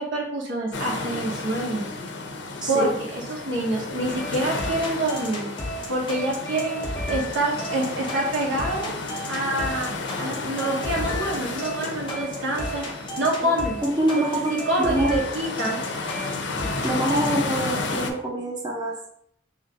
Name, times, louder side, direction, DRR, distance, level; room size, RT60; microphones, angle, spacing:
voice 1, 0.0-1.8 2.7-5.5 5.9-6.8 7.1-8.9 9.3-9.9 10.2-12.9 13.2-13.8 14.2-14.3 14.5-15.8, right 1 dB, 80° right, -2 dB, 1.0 m, -26 dB
sound 1, 0.7-18.1, left 3 dB, 65° left, 0.5 m, -32 dB
sound 2, 4.2-17.3, equal, 25° left, 0.6 m, -34 dB
voice 2, 13.8-15.2 16.8-19.1, right 1 dB, 20° right, -3 dB, 0.6 m, -25 dB
3.0 x 2.5 x 3.9 m, 0.70 s
head